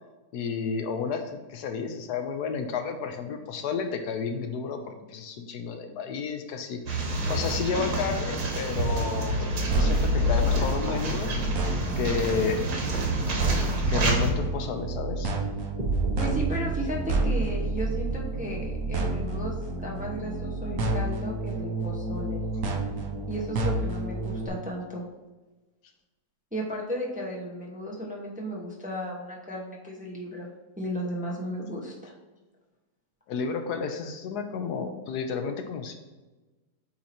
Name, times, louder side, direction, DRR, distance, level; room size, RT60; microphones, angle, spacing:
voice 1, 0.3-7.0 7.3-11.3 12.0-12.6 13.7-15.3 33.3-35.9, left 5 dB, 80° left, 6 dB, 1.2 m, -31 dB
sound 1, 6.9-14.3, equal, 85° right, 1.8 m, -28 dB
sound 2, 9.7-24.5, right 2 dB, 60° right, 1.2 m, -30 dB
sound 3, 15.8-19.8, right 4 dB, 35° right, 0.7 m, -32 dB
voice 2, 16.2-19.5 19.8-22.4 23.3-25.0 26.5-30.5 30.8-32.1, equal, 5° right, -3 dB, 0.8 m, -34 dB
8.5 x 2.9 x 4.2 m, 1.2 s
omnidirectional pair, 1.7 m